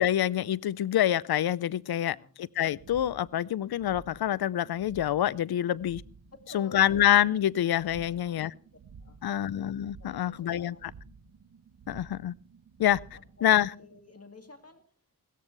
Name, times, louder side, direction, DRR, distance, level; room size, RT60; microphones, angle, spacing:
voice 1, 0.0-6.0 6.5-8.5 9.2-10.9 11.9-12.3 12.8-13.0 13.4-13.7, left 11 dB, 80° left, 23 dB, 0.5 m, -26 dB
voice 2, 2.0-2.3 6.3-6.9 8.0-8.5 9.0-9.4 10.0-10.9 13.1-14.8, left 3 dB, 40° left, 7 dB, 2.4 m, -51 dB
sound 1, 2.6-14.4, right 5 dB, 75° right, 1.1 m, -53 dB
16.5 x 14.0 x 3.3 m, 0.43 s
cardioid pair, 55°, 37 cm